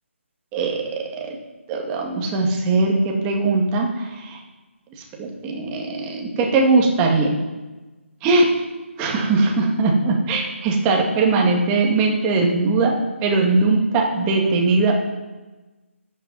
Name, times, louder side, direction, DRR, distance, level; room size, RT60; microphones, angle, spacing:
voice 1, 0.5-1.3 1.7-4.4 5.2-7.4 8.2-8.5 9.0-12.9 13.2-15.1, right 3 dB, 15° right, 0 dB, 2.1 m, -20 dB
13.5 x 9.6 x 4.2 m, 1.2 s
figure-of-eight pair, 155°, 7 cm